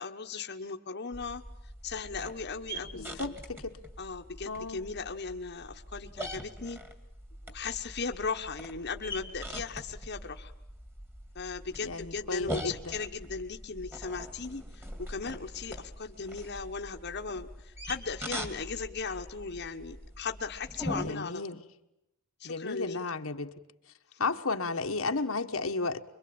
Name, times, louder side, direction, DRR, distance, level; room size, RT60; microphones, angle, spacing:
voice 1, 0.0-1.4 1.8-3.4 4.0-6.8 7.5-10.5 11.3-21.4 22.4-23.0, left 4 dB, 50° left, 4 dB, 1.3 m, -37 dB
sound 1, 1.1-21.1, equal, 10° right, 2.4 m, -43 dB
voice 2, 2.9-3.8 4.5-4.8 11.8-12.9 20.9-21.6 22.4-23.5 24.2-26.0, left 3 dB, 75° left, 5 dB, 1.4 m, -33 dB
25.0 x 23.5 x 8.8 m, 0.85 s
head